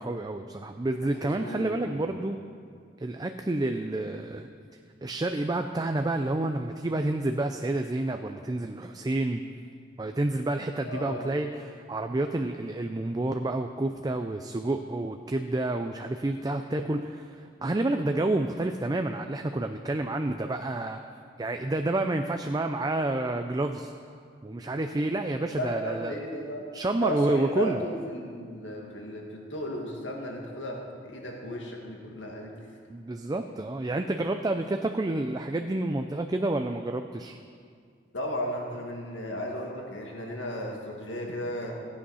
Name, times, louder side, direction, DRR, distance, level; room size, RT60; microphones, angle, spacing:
voice 1, 0.0-2.4 3.0-4.5 5.0-9.4 10.0-21.0 21.4-23.9 24.4-26.1 26.7-27.8 32.9-37.4, right 2 dB, 20° right, 6 dB, 0.4 m, -29 dB
voice 2, 1.0-2.0 10.9-11.3 25.6-26.6 27.0-32.5 38.1-41.7, equal, 85° left, 0 dB, 1.9 m, -35 dB
15.0 x 8.6 x 5.6 m, 2.2 s
head